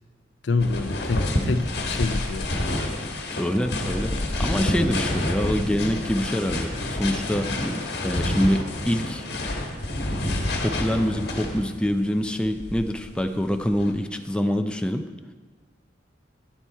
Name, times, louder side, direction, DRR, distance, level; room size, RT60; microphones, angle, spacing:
voice 1, 0.4-2.5, left 3 dB, 80° left, 11 dB, 0.5 m, -26 dB
sound 1, 0.6-11.9 12.4-13.9, left 1 dB, 65° left, 1.3 m, -28 dB
voice 2, 3.3-6.7 7.0-7.5 8.0-9.2 10.6-15.1, equal, 5° left, 6 dB, 0.4 m, -25 dB
10.5 x 7.0 x 4.6 m, 1.4 s
head